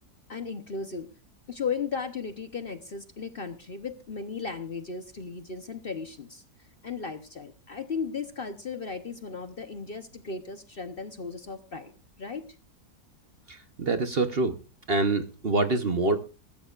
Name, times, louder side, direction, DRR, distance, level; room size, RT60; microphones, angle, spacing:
voice 1, 0.3-1.1 1.5-6.4 6.8-11.9 12.2-12.4, left 5 dB, 40° left, 9 dB, 1.0 m, -35 dB
voice 2, 13.5-14.5 14.9-16.2, right 3 dB, 40° right, 9 dB, 1.0 m, -25 dB
21.5 x 12.5 x 2.4 m, 0.32 s
omnidirectional pair, 1.7 m